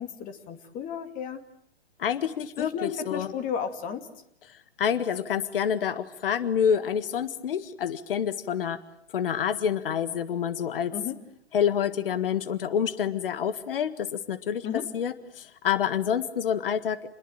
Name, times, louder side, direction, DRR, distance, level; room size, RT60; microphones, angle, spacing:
voice 1, 0.0-1.4 2.6-4.1 10.9-11.2 14.6-14.8, left 8 dB, 25° left, 8 dB, 2.6 m, -33 dB
voice 2, 2.0-3.3 4.5-8.8 9.1-10.9 11.5-14.7 14.9-17.1, left 8 dB, 55° left, 13 dB, 1.8 m, -28 dB
29.5 x 21.5 x 9.0 m, 0.69 s
figure-of-eight pair, 115°, 33 cm